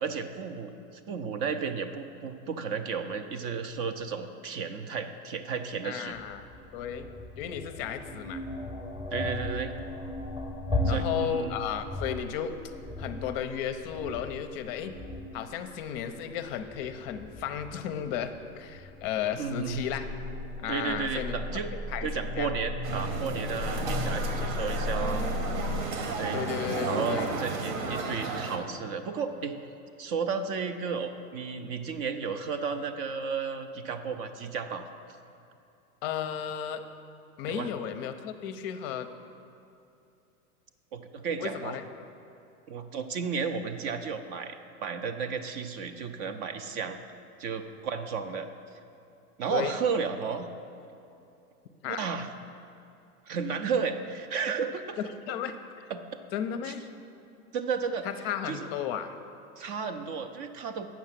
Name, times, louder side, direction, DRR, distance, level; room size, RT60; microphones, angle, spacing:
voice 1, 0.0-6.2 9.1-9.7 10.8-11.6 19.4-19.8 20.7-21.7 22.0-25.3 26.0-26.4 26.8-29.5 30.0-34.9 37.5-37.7 40.9-41.8 42.7-47.0 47.4-48.5 49.4-50.5 51.9-52.3 53.3-55.0 55.9-56.0 56.7-56.8 57.5-58.1 58.5-58.7 59.6-60.9, right 6 dB, 40° right, 8 dB, 0.5 m, -33 dB
voice 2, 5.8-6.5 6.7-7.1 7.4-8.4 10.8-12.5 13.0-14.9 15.3-20.1 20.6-22.1 22.4-22.5 26.3-27.3 36.0-36.8 37.4-39.1 41.4-41.8 49.5-49.8 51.8-52.0 55.3-55.9 56.3-56.8 58.0-59.2, left 9 dB, 40° left, 8 dB, 0.6 m, -34 dB
sound 1, 6.1-25.8, left 2 dB, 5° right, 0.8 m, -36 dB
sound 2, 22.8-28.6, right 4 dB, 60° right, 1.3 m, -33 dB
7.1 x 5.5 x 7.4 m, 2.7 s
hypercardioid pair, 115°, 45 cm